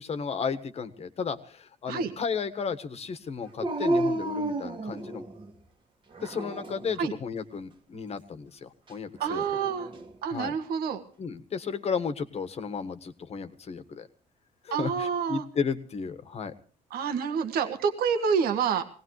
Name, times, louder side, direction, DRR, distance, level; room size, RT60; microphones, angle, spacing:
voice 1, 0.0-5.2 6.2-9.4 10.3-10.5 11.2-14.1 14.6-16.5, left 6 dB, 45° left, 11 dB, 1.5 m, -34 dB
Dog, 3.6-5.5 6.1-6.9 9.2-10.1, right 1 dB, 30° right, 1.8 m, -31 dB
voice 2, 9.2-9.9 10.2-11.0 14.7-15.4 16.9-18.9, right 6 dB, 85° right, 8 dB, 1.7 m, -28 dB
21.5 x 18.0 x 3.2 m, 0.40 s
cardioid pair, 120°, 15 cm